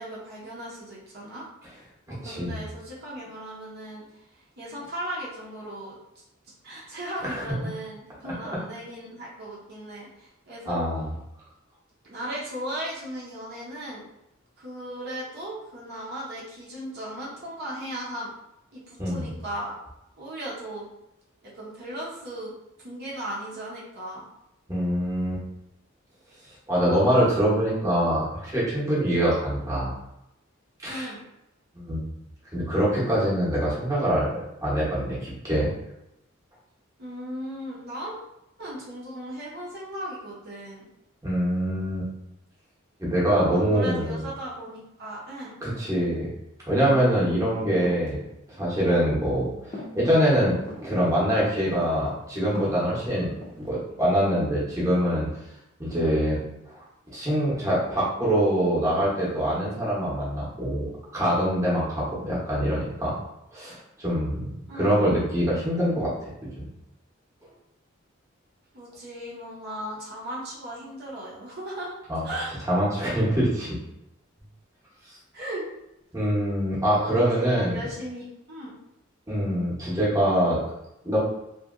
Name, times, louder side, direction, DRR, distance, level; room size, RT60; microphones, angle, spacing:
voice 1, 0.0-1.4 2.1-4.2 4.6-6.0 6.6-10.8 12.0-14.0 14.6-18.3 18.7-19.8 20.2-20.9 21.4-22.5 22.8-24.2 30.9-31.2 37.0-38.1 38.6-40.9 43.5-45.5 64.7-65.1 68.7-71.9 72.2-72.5 75.3-75.6 77.1-78.8, right 1 dB, 50° right, -6 dB, 0.7 m, -37 dB
voice 2, 2.2-2.6 7.2-7.4 10.7-11.1 19.0-19.3 24.7-25.4 26.7-29.9 30.8-31.1 31.7-32.1 32.5-35.7 41.2-42.1 43.0-44.2 45.6-46.3 46.7-48.2 48.5-49.5 49.9-53.3 53.6-55.3 55.8-56.4 57.1-60.8 61.1-63.1 63.5-66.7 72.1-72.2 72.7-73.8 76.1-77.8 79.3-80.6 81.0-81.2, equal, 15° right, -7 dB, 0.9 m, -24 dB
sound 1, 46.9-47.2 47.8-48.1 48.8-48.9 49.7-49.9 50.6-50.9 51.7-52.1 52.4-52.9 53.4-53.7, left 1 dB, 30° left, 0.5 m, -38 dB
2.7 x 2.7 x 2.5 m, 0.86 s
head